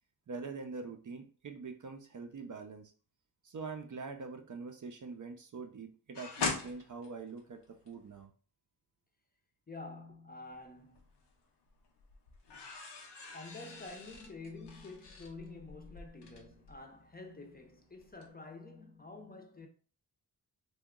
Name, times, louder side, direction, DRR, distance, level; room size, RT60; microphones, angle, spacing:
voice 1, 0.3-2.9 3.4-8.3, right 4 dB, 50° right, 0.5 m, -44 dB
sound 1, 6.1-8.2 10.5-11.3 11.7-17.7 18.0-18.3, left 4 dB, 85° left, 0.7 m, -42 dB
voice 2, 9.7-11.1 13.3-19.7, left 3 dB, 25° left, 0.6 m, -48 dB
2.8 x 2.2 x 3.6 m
wide cardioid pair, 65°, 40 cm